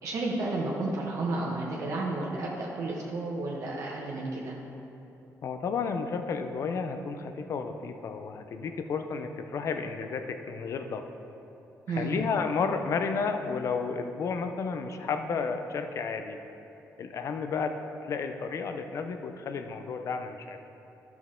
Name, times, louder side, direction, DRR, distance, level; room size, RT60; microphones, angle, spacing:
voice 1, 0.0-4.5 11.9-12.1, right 2 dB, 60° right, -4 dB, 1.1 m, -32 dB
voice 2, 5.4-11.1 11.9-16.4 17.0-17.7 18.0-20.6, left 5 dB, 55° left, 7 dB, 0.6 m, -32 dB
12.0 x 6.0 x 3.7 m, 2.9 s
cardioid pair, 125°, 6 cm